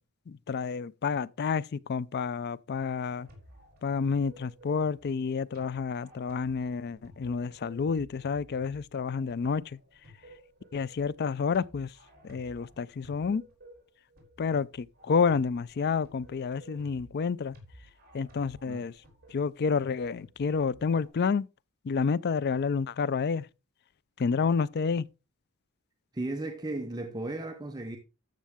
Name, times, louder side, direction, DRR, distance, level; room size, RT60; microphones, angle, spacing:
voice 1, 0.3-3.3 3.8-9.6 10.7-11.9 12.2-13.4 14.4-17.5 18.1-18.9 19.3-21.5 21.8-23.5 24.2-25.0, left 5 dB, 50° left, 0.4 m, -29 dB
sound 1, 3.1-21.1, equal, 45° right, 4.3 m, -55 dB
voice 2, 26.1-28.0, right 2 dB, 20° right, 0.8 m, -35 dB
12.5 x 7.4 x 3.5 m
head